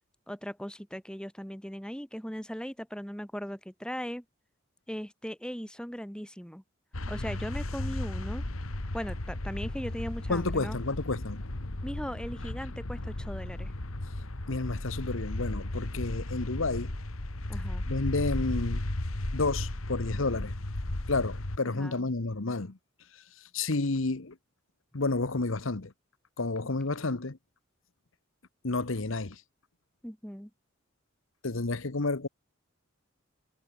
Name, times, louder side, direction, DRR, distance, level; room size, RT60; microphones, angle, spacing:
voice 1, 0.3-4.2 4.9-6.6 7.1-8.4 8.9-10.8 11.8-13.7 17.5-17.8 21.7-22.1 30.0-30.5, equal, 5° left, 2.5 m, -38 dB
sound 1, 6.9-21.6, left 1 dB, 90° left, 1.9 m, -35 dB
voice 2, 10.3-11.4 14.5-16.9 17.9-18.8 19.3-20.5 21.1-22.8 23.1-24.4 24.9-25.9 26.4-27.4 28.6-29.4 31.4-32.3, left 3 dB, 70° left, 1.2 m, -31 dB
head